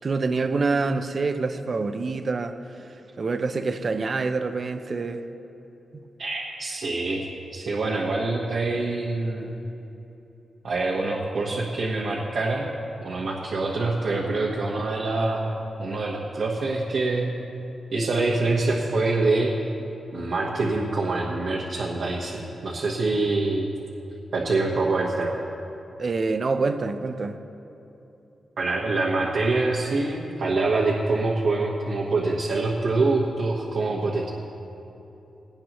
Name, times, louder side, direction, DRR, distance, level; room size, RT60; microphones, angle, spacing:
voice 1, 0.0-2.6 3.2-5.2 26.0-27.4, right 4 dB, 35° right, 9 dB, 0.6 m, -26 dB
voice 2, 6.2-7.3 7.5-9.5 10.6-12.7 13.0-17.5 17.9-19.6 20.1-23.7 24.3-25.4 28.6-34.3, right 3 dB, 65° right, -4 dB, 1.4 m, -25 dB
18.0 x 17.5 x 3.1 m, 2.9 s
wide cardioid pair, 175°, 0 cm